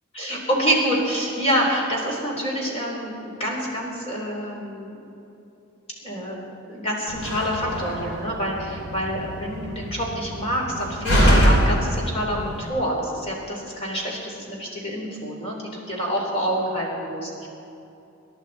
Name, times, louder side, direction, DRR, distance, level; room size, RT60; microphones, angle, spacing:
voice 1, 0.2-5.0 6.0-6.4 6.7-17.5, equal, 30° left, -2 dB, 3.7 m, -27 dB
Slam, 7.1-12.7, equal, 80° left, 3.0 m, -24 dB
27.0 x 11.5 x 4.2 m, 2.9 s
head